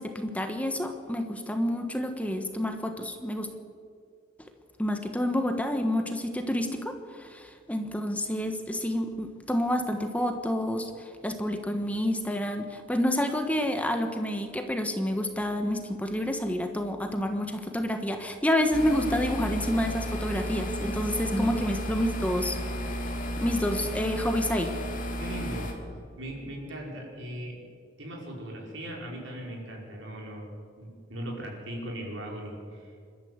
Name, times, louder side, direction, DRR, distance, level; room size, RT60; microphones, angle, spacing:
voice 1, 0.0-3.5 4.8-22.6 23.4-24.7, left 1 dB, 5° left, 5 dB, 1.3 m, -29 dB
sound 1, 18.7-25.7, equal, 45° left, 2.8 m, -33 dB
voice 2, 25.2-25.8 26.2-27.6 28.0-32.9, right 1 dB, 80° right, -1 dB, 5.4 m, -39 dB
27.0 x 12.5 x 8.2 m, 2.2 s
head